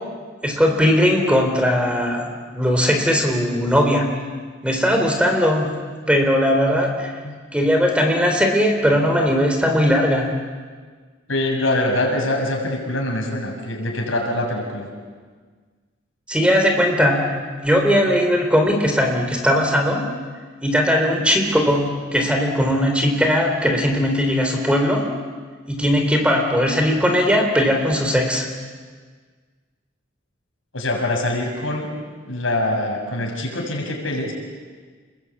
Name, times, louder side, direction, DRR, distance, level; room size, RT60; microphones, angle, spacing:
voice 1, 0.4-4.1 4.6-5.8 6.1-7.1 7.5-10.3 16.3-17.4 17.6-20.1 20.6-25.1 25.7-28.5, equal, 5° right, 3 dB, 3.7 m, -19 dB
voice 2, 11.3-14.9 30.7-31.9 32.2-34.3, left 1 dB, 85° left, 0 dB, 7.1 m, -24 dB
29.0 x 22.0 x 8.6 m, 1.5 s
head